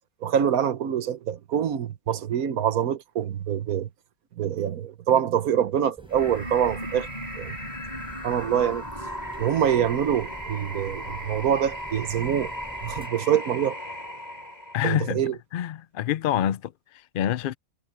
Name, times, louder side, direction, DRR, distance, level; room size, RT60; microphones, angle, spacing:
voice 1, 0.2-3.9 4.4-7.1 7.4-7.6 8.2-8.8 9.4-12.5 12.8-13.8 14.8-15.3, right 9 dB, 85° right, 1.4 m, -25 dB
sound 1, 6.0-13.1, equal, 5° right, 6.1 m, -46 dB
sound 2, 6.1-15.1, equal, 30° left, 5.0 m, -36 dB
voice 2, 14.7-15.2 15.5-17.5, left 11 dB, 70° left, 0.5 m, -27 dB
omnidirectional pair, 1.5 m